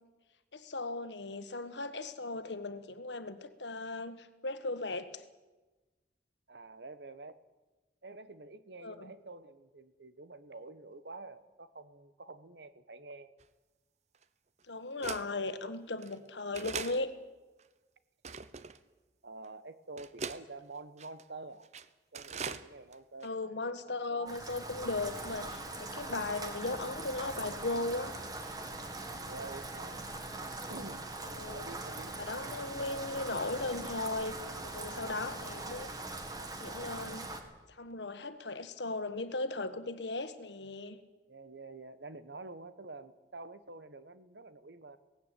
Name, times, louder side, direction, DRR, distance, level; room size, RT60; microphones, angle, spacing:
voice 1, 0.5-5.2 8.8-9.1 14.7-17.1 23.2-28.2 31.3-31.6 32.2-34.4 34.6-35.9 36.6-37.3 37.7-41.0, left 2 dB, 90° left, 11 dB, 1.5 m, -37 dB
voice 2, 6.5-7.4 8.0-13.3 19.2-21.7 22.1-24.4 29.3-30.1 30.7-31.1 31.5-32.2 41.3-45.0, right 3 dB, 75° right, 13 dB, 1.2 m, -48 dB
sound 1, 13.4-13.5 14.2-14.3 15.0-15.3 16.0-16.1 16.5-17.0 17.6-17.7 18.2-18.8 19.4-19.5 20.0-20.4 21.0-21.2 21.6-21.9 22.1-22.6 22.9-23.0 23.2-23.3, right 5 dB, 40° right, 0.8 m, -40 dB
Rain, 24.3-37.4, right 2 dB, 20° right, 2.0 m, -41 dB
18.0 x 16.5 x 9.2 m, 1.2 s
head